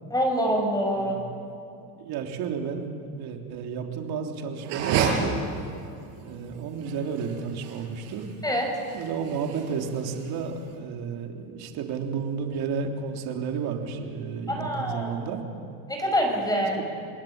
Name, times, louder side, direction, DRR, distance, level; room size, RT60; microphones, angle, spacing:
voice 1, 0.1-1.2 8.4-8.7 14.5-15.1 15.9-16.8, equal, 10° left, 1 dB, 6.2 m, -25 dB
voice 2, 2.0-5.4 6.2-8.3 8.9-15.4 16.6-16.8, right 6 dB, 55° right, 3 dB, 3.5 m, -32 dB
sound 1, 4.6-10.7, right 6 dB, 70° right, 7.3 m, -31 dB
28.5 x 21.0 x 8.9 m, 2.5 s
supercardioid pair, 125°, 45 cm